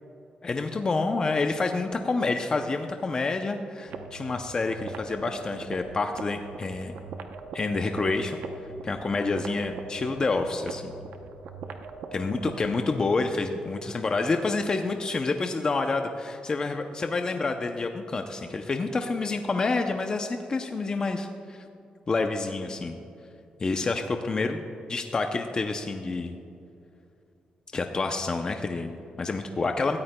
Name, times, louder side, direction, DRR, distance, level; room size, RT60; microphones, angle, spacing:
voice 1, 0.4-6.9 7.5-8.4 8.8-10.9 12.1-21.6 22.1-23.0 23.6-24.6 24.9-26.3 27.7-30.0, left 3 dB, 30° left, 5 dB, 0.5 m, -28 dB
sound 1, 3.9-12.9, right 4 dB, 85° right, 0.7 m, -41 dB
17.5 x 13.5 x 2.2 m, 2.6 s
cardioid pair, 135°, 3 cm